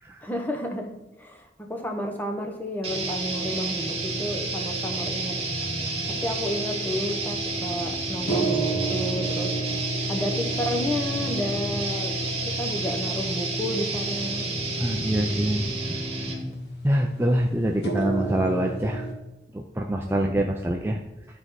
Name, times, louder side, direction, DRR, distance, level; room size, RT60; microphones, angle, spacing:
voice 1, 0.2-5.4 6.1-9.6 10.1-14.5 20.0-20.3, left 1 dB, 10° left, 2 dB, 0.9 m, -31 dB
sound 1, 2.8-16.5, right 3 dB, 35° right, 1.6 m, -30 dB
sound 2, 3.8-19.1, right 1 dB, 80° left, 1.4 m, -33 dB
voice 2, 14.8-16.0 16.8-19.0 19.5-21.0, right 1 dB, 15° right, 1 dB, 0.5 m, -25 dB
11.5 x 4.6 x 4.1 m, 0.96 s
head